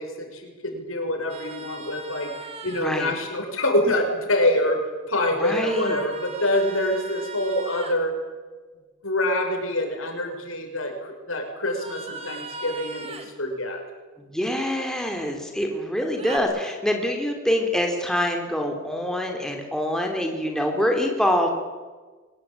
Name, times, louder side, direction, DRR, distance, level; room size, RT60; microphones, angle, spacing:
voice 1, 0.0-2.3 2.6-4.8 5.1-8.1 9.0-13.8, left 1 dB, 80° left, 4 dB, 6.0 m, -25 dB
sound 1, 1.3-2.9 5.4-8.0 11.7-13.3 16.2-16.4, right 3 dB, 30° right, 2.7 m, -38 dB
voice 2, 2.8-3.1 5.4-6.0 14.3-21.5, left 1 dB, 5° left, 2 dB, 3.4 m, -25 dB
24.0 x 20.5 x 8.9 m, 1.4 s
head